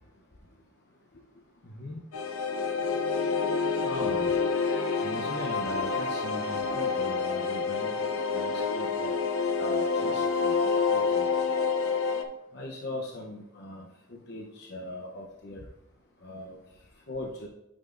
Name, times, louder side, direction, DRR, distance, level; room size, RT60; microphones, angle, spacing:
voice 1, 1.6-2.0 3.8-7.9 8.3-9.1 9.6-11.3 12.5-13.9 14.3-15.6 16.2-16.6 17.1-17.5, left 1 dB, 50° left, -1 dB, 0.7 m, -39 dB
sound 1, 2.1-12.2, left 5 dB, 90° left, 0.6 m, -28 dB
8.6 x 5.8 x 2.5 m, 0.85 s
head